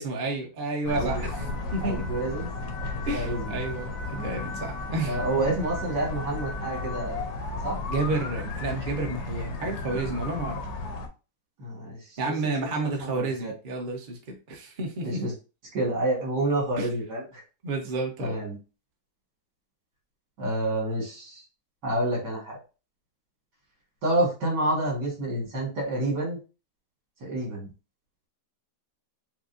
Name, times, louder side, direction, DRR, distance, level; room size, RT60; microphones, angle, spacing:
voice 1, 0.0-1.4 1.7-2.0 3.1-5.4 7.9-10.6 12.2-14.2 14.5-15.2 16.8-16.9 17.6-18.4, right 3 dB, 40° right, 1 dB, 0.8 m, -30 dB
sound 1, 0.8-11.1, left 3 dB, 70° left, 1.2 m, -34 dB
voice 2, 1.8-2.5 2.8-3.6 4.1-4.4 5.0-7.2 7.6-7.8 11.6-12.0 12.2-13.5 15.0-15.3 15.7-17.4 18.2-18.6 20.4-21.4 21.8-22.6 24.0-26.4 27.2-27.7, right 1 dB, 80° right, -2 dB, 2.2 m, -29 dB
6.1 x 2.1 x 2.5 m, 0.31 s
omnidirectional pair, 1.8 m